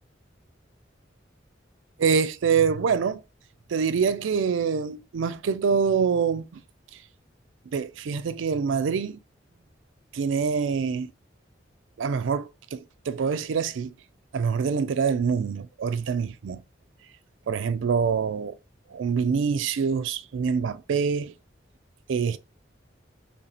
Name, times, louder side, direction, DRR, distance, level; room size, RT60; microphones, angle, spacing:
voice 1, 2.0-3.2 3.7-6.5 7.7-9.2 10.1-11.1 12.0-13.9 14.3-16.6 17.5-18.5 18.9-21.3 22.1-22.4, right 6 dB, 85° right, 0.4 m, -25 dB
3.2 x 2.9 x 3.9 m
head